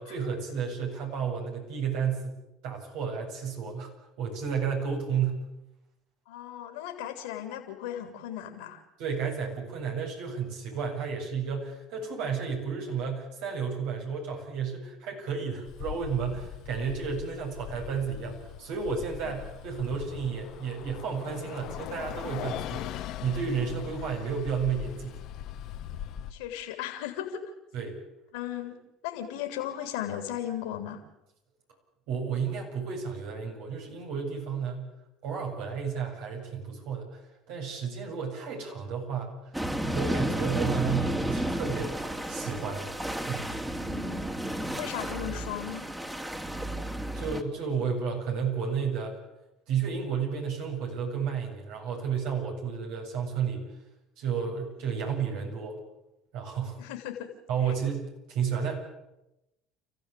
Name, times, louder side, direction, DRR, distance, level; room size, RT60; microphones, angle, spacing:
voice 1, 0.0-2.3 2.6-3.9 4.2-5.5 9.0-25.2 27.7-28.0 32.1-34.9 35.2-37.2 37.5-39.5 39.9-42.9 43.3-43.6 47.1-49.2 49.7-53.7 54.2-55.8 56.3-56.8 57.5-58.7, right 6 dB, 70° right, 1 dB, 7.8 m, -32 dB
voice 2, 6.3-8.8 19.2-19.3 26.3-27.4 28.3-28.8 29.0-31.0 43.7-44.3 44.7-45.8 56.8-57.3 57.6-57.7, left 11 dB, 80° left, 4 dB, 3.2 m, -36 dB
Bus, 15.7-26.3, left 11 dB, 65° left, 1.4 m, -40 dB
sound 1, 39.5-47.4, right 1 dB, 10° right, 2.6 m, -32 dB
29.5 x 15.0 x 8.5 m, 0.91 s
hypercardioid pair, 75°, 0 cm